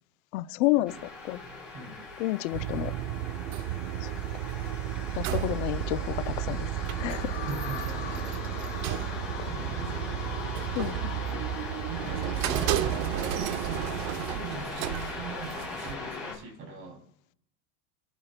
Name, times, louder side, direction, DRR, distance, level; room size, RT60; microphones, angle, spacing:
voice 1, 0.3-1.4 2.2-2.9 4.0-4.1 5.2-6.7 7.0-7.4 9.4-9.6 10.7-11.1, left 18 dB, 90° left, 0.6 m, -30 dB
sound 1, 0.9-16.3, left 3 dB, 5° right, 3.4 m, -41 dB
voice 2, 1.7-2.0 5.2-5.5 7.4-8.2 9.5-10.1 10.9-11.5 11.9-13.1 13.4-17.0, right 4 dB, 30° right, 3.0 m, -41 dB
sound 2, 2.5-16.0, right 12 dB, 90° right, 0.8 m, -32 dB
sound 3, 6.8-16.4, left 10 dB, 40° left, 2.4 m, -43 dB
29.5 x 10.5 x 2.2 m
cardioid pair, 175°, 39 cm